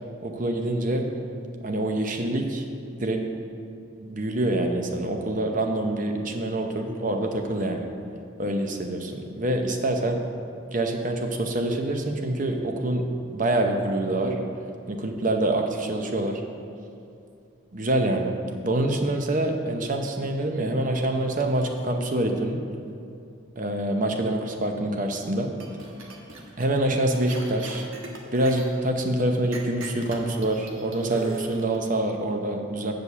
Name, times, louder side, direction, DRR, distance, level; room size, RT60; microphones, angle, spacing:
voice 1, 0.2-1.1 1.6-2.6 2.9-3.3 4.0-7.9 8.4-10.2 10.7-14.4 14.9-16.4 17.7-18.3 18.6-22.6 23.6-25.5 26.6-27.9 28.3-32.9, right 1 dB, 40° right, 4 dB, 0.7 m, -26 dB
sound 1, 25.6-26.7 27.1-28.6 29.5-31.9, right 3 dB, 80° right, 1.2 m, -39 dB
8.0 x 5.2 x 7.0 m, 2.5 s
head